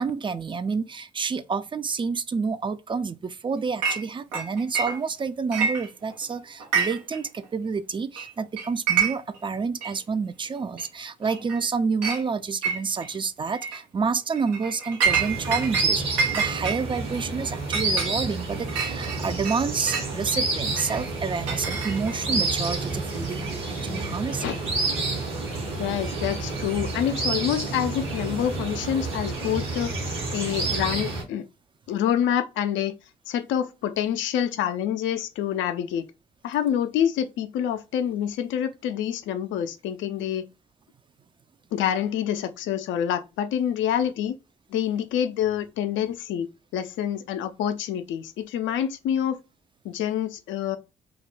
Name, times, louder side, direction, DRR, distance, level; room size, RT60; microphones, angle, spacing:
voice 1, 0.0-23.5 23.8-24.6, right 5 dB, 25° right, 0.3 m, -29 dB
Chink clink, 3.8-4.0 4.3-5.2 5.5-6.2 6.6-7.2 7.4-7.5 8.2-8.3 8.6-9.4 9.8-9.9 10.8-10.9 11.3-11.6 12.0-12.2 12.6-13.1 13.5-13.8 14.3-15.9 16.2-20.1 20.8-22.3, right 6 dB, 90° right, 0.6 m, -27 dB
sound 1, 15.1-31.2, right 3 dB, 70° right, 1.0 m, -29 dB
voice 2, 25.8-29.9 30.3-31.4 31.9-32.9 33.3-36.0 36.4-40.4 41.7-44.3 44.7-46.5 46.7-49.4 49.8-50.8, left 10 dB, 65° left, 0.4 m, -27 dB
2.4 x 2.1 x 3.1 m
hypercardioid pair, 40°, 21 cm